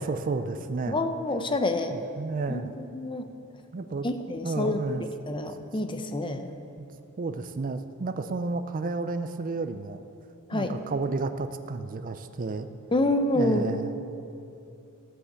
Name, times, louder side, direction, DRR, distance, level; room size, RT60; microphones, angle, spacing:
voice 1, 0.0-1.0 1.9-2.7 3.7-4.1 4.4-5.0 6.8-6.9 7.2-10.0 10.5-12.7 13.3-14.0, right 3 dB, 40° right, 9 dB, 0.4 m, -31 dB
voice 2, 0.9-2.0 2.5-3.3 4.0-6.5 10.5-10.8 12.9-13.7, left 1 dB, 20° left, 7 dB, 0.6 m, -28 dB
14.5 x 5.7 x 8.1 m, 2.7 s
head